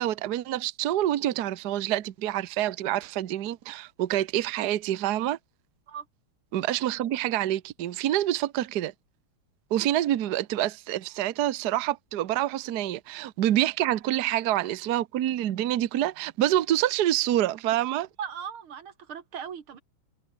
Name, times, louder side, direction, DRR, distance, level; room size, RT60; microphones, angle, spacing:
voice 1, 0.0-5.4 6.5-8.9 9.7-18.1, right 13 dB, 60° right, 1.3 m, -27 dB
voice 2, 18.2-19.8, right 7 dB, 80° right, 2.8 m, -38 dB
omnidirectional pair, 2.3 m